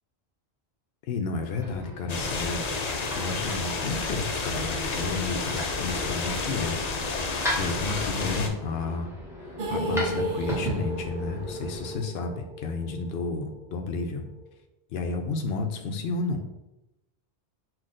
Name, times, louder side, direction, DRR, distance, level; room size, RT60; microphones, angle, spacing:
voice 1, 1.0-2.6 3.2-9.1 9.4-14.3 14.9-16.5, left 3 dB, 70° left, 5 dB, 0.8 m, -32 dB
sound 1, 1.4-11.9, equal, 5° right, 1.0 m, -38 dB
sound 2, 2.1-8.5, left 3 dB, 50° left, 0.6 m, -30 dB
sound 3, 9.6-13.7 14.0-14.1 14.4-14.5, right 1 dB, 60° right, 0.9 m, -33 dB
6.0 x 2.4 x 3.7 m, 0.93 s
omnidirectional pair, 1.1 m